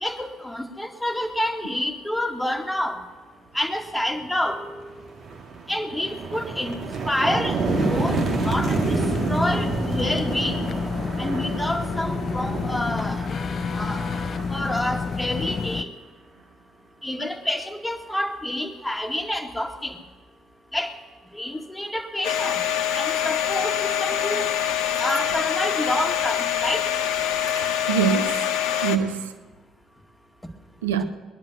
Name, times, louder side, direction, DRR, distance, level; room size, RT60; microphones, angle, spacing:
voice 1, 0.0-3.0 3.5-4.9 5.7-6.8 7.1-7.6 7.8-8.2 8.4-9.0 9.3-10.6 11.2-13.2 13.7-14.0 14.5-15.9 17.0-20.0 20.7-20.9 21.3-22.6 22.9-24.5 25.0-26.8, left 1 dB, 10° left, 2.1 m, -28 dB
sound 1, 4.2-4.4 4.8-15.6, right 4 dB, 55° right, 2.0 m, -29 dB
sound 2, 7.7-15.8, left 5 dB, 45° left, 0.6 m, -29 dB
Domestic sounds home sounds, 22.2-29.0, left 10 dB, 70° left, 1.1 m, -25 dB
voice 2, 27.4-28.5 28.8-29.3 30.8-31.0, right 8 dB, 85° right, 0.6 m, -25 dB
21.0 x 10.5 x 6.3 m
hypercardioid pair, 50°, 0 cm